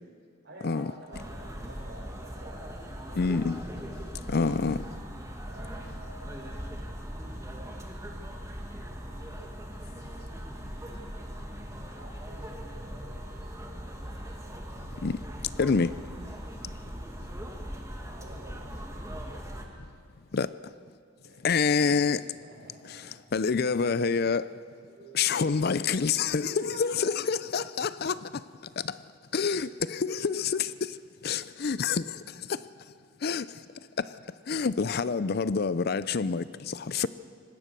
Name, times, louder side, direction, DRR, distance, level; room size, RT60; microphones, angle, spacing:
voice 1, 0.4-3.2 5.5-7.8 11.8-13.5 18.1-19.0 21.3-21.4 22.4-23.1 24.7-25.4 26.1-27.4 33.6-33.7, right 1 dB, 60° right, 5.3 m, -50 dB
sound 1, 1.1-19.6, equal, 15° right, 1.9 m, -40 dB
voice 2, 3.2-3.6 4.3-4.9 15.0-15.2 15.6-15.9 20.3-20.7 21.4-22.3 22.9-23.0 23.3-24.5 25.1-28.4 28.8-29.0 29.3-32.7 33.2-33.6 34.0-34.1 34.5-37.1, left 5 dB, 50° left, 0.5 m, -27 dB
25.0 x 18.5 x 6.7 m
head